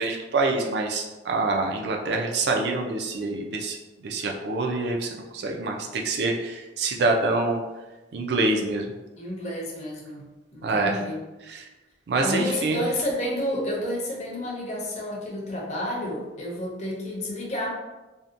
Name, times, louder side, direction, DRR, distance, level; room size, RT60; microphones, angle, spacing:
voice 1, 0.0-3.8 4.0-7.6 8.1-8.9 10.6-11.0 12.1-12.8, right 3 dB, 60° right, 1 dB, 0.4 m, -26 dB
voice 2, 9.2-11.2 12.2-17.7, left 1 dB, 35° left, -4 dB, 0.6 m, -30 dB
2.7 x 2.1 x 2.4 m, 1.1 s
head